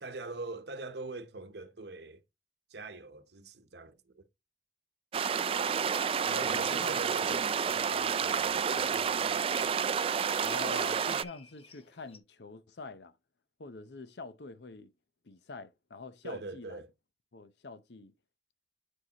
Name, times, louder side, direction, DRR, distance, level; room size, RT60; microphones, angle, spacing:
voice 1, 0.0-2.2 2.7-4.3 6.4-9.7 16.2-16.9, right 3 dB, 65° right, 0.9 m, -44 dB
sound 1, 5.1-11.2, right 7 dB, 30° right, 0.3 m, -30 dB
sound 2, 6.0-12.2, left 5 dB, 35° left, 1.0 m, -54 dB
voice 2, 6.3-7.0 7.3-7.4 10.4-13.2 13.6-14.9 15.2-16.8 17.3-18.1, left 3 dB, 70° left, 0.7 m, -45 dB
9.8 x 4.7 x 2.9 m
head